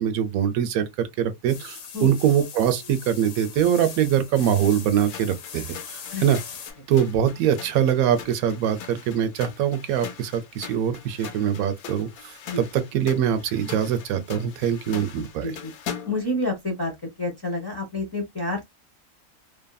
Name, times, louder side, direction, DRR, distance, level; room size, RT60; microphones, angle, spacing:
voice 1, 0.0-6.4 6.9-15.5, right 9 dB, 85° right, 1.1 m, -23 dB
sound 1, 1.5-6.7, left 7 dB, 65° left, 1.0 m, -40 dB
sound 2, 5.0-16.3, left 8 dB, 85° left, 1.1 m, -41 dB
voice 2, 15.1-15.7 16.1-16.9 17.2-18.6, left 2 dB, 20° left, 0.7 m, -29 dB
2.7 x 2.5 x 2.2 m
omnidirectional pair, 1.5 m